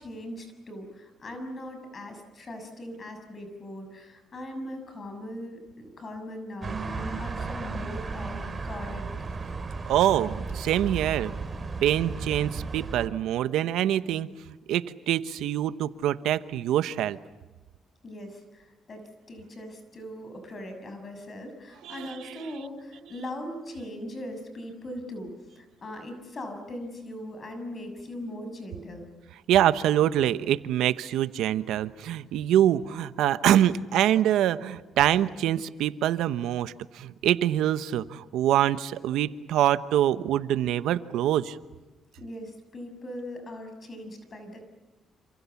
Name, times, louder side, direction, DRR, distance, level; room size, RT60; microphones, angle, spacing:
voice 1, 0.0-9.1 18.0-29.1 42.2-44.7, left 1 dB, 40° left, 7 dB, 6.8 m, -40 dB
sound 1, 6.6-13.1, right 4 dB, 30° right, 3.2 m, -34 dB
voice 2, 9.9-11.3 11.8-14.3 14.7-17.2 21.8-22.5 29.5-41.6, right 11 dB, 85° right, 14 dB, 1.0 m, -25 dB
28.0 x 27.0 x 7.2 m, 1.1 s
cardioid pair, 90°, 0 cm